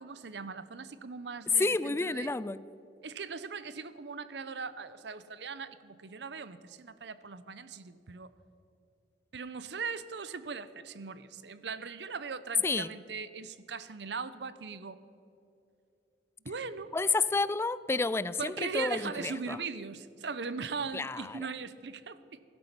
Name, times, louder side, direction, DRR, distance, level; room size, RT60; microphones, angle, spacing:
voice 1, 0.0-2.3 3.0-8.3 9.3-15.0 16.4-16.9 18.4-22.4, right 5 dB, 75° right, 15 dB, 0.7 m, -39 dB
voice 2, 1.5-2.6 12.6-12.9 16.9-19.6 20.9-21.5, left 3 dB, 15° left, 18 dB, 0.3 m, -30 dB
16.5 x 12.0 x 5.9 m, 2.8 s
head